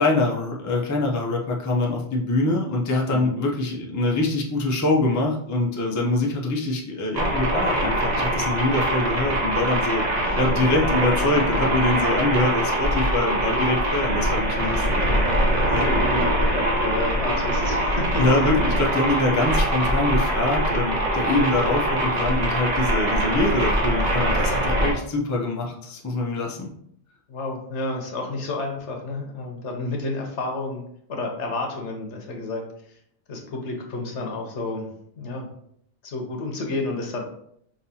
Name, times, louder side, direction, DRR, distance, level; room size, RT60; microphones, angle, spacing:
voice 1, 0.0-10.0 10.3-15.0 15.7-15.9 18.2-26.7, left 2 dB, 25° left, -1 dB, 0.4 m, -24 dB
sound 1, 7.1-24.9, right 1 dB, 40° right, 0.9 m, -23 dB
voice 2, 10.2-10.5 14.6-15.1 15.8-18.2 27.3-30.8 31.1-32.6 33.3-34.9 35.2-35.5 36.0-37.2, left 2 dB, 80° left, 2 dB, 1.2 m, -30 dB
5.3 x 2.8 x 2.8 m, 0.68 s
omnidirectional pair, 1.2 m